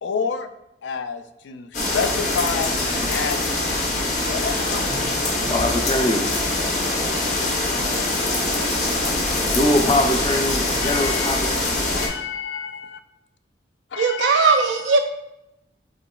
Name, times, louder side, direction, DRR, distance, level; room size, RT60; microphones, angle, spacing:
voice 1, 0.0-0.5 0.8-3.7 4.2-5.0 10.8-11.7 11.9-13.0 13.9-14.8, left 5 dB, 85° left, 9 dB, 0.4 m, -29 dB
sound 1, 1.7-12.1, left 2 dB, 45° left, 0.8 m, -23 dB
voice 2, 5.5-6.2 9.5-11.5, left 1 dB, 25° left, 3 dB, 0.5 m, -22 dB
voice 3, 14.0-15.0, right 4 dB, 75° right, 5 dB, 0.3 m, -18 dB
7.6 x 3.0 x 2.3 m, 0.86 s
head